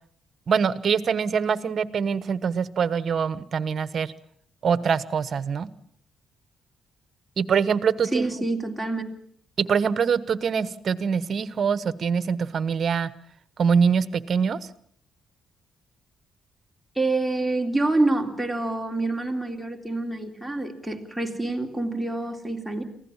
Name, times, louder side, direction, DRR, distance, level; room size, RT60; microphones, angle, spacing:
voice 1, 0.5-4.1 4.6-5.7 7.4-8.3 9.6-13.1 13.6-14.6, right 6 dB, 50° right, 15 dB, 1.2 m, -24 dB
voice 2, 8.1-9.0 16.9-22.8, right 2 dB, ahead, 1 dB, 3.4 m, -26 dB
24.0 x 16.5 x 7.3 m, 0.63 s
cardioid pair, 90°, 0 cm